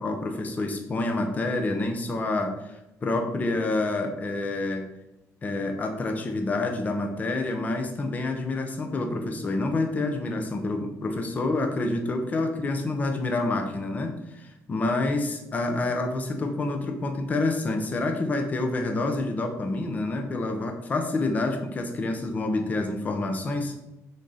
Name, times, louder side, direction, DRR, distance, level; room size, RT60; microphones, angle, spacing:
voice 1, 0.0-4.9 5.4-23.8, left 2 dB, 25° left, 4 dB, 0.9 m, -28 dB
6.4 x 4.0 x 5.0 m, 0.90 s
cardioid pair, 160°, 6 cm